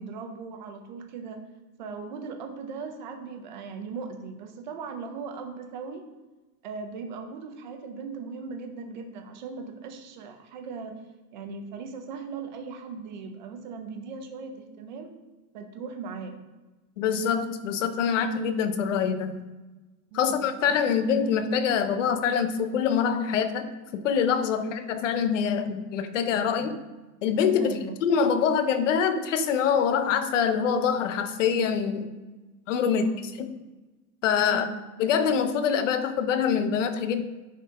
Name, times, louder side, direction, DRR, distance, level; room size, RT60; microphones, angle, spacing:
voice 1, 0.0-1.4 1.8-6.0 6.6-11.0 11.3-15.2 15.5-16.4 20.1-20.8 24.6-24.8 27.6-28.0 32.9-33.3 34.5-34.8, right 5 dB, 30° right, 5 dB, 0.6 m, -38 dB
voice 2, 17.0-19.4 20.1-26.8 27.2-32.1 32.7-33.0 33.4-33.5 34.2-34.7 35.0-37.2, left 7 dB, 50° left, 9 dB, 0.7 m, -25 dB
10.5 x 4.3 x 3.7 m, 1.2 s
supercardioid pair, 175°, 47 cm